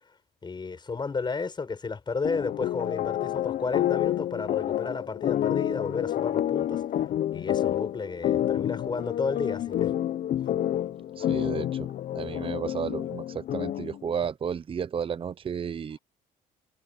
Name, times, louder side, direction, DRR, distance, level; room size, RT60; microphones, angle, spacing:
voice 1, 0.4-6.8 7.3-9.9, left 4 dB, 25° left, 7.5 m, -32 dB
sound 1, 2.2-14.0, left 11 dB, 55° left, 0.8 m, -29 dB
voice 2, 11.2-11.9 12.1-16.0, right 7 dB, 30° right, 0.8 m, -32 dB
cardioid pair, 110°, 17 cm